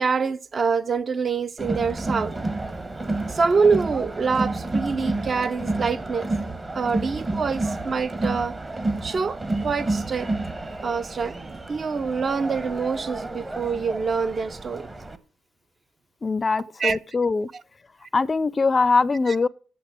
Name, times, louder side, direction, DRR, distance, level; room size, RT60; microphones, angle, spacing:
voice 1, 0.0-2.4 3.3-6.3 6.7-8.6 9.0-10.3 10.8-11.4 11.7-14.9 16.8-17.0 19.3-19.4, right 5 dB, 40° right, 0.5 m, -25 dB
Crowd, 1.6-15.2, right 2 dB, 25° right, 0.9 m, -30 dB
voice 2, 16.2-17.5 18.1-19.5, left 4 dB, 30° left, 0.4 m, -22 dB
8.6 x 6.9 x 6.2 m
cardioid pair, 90°, 0 cm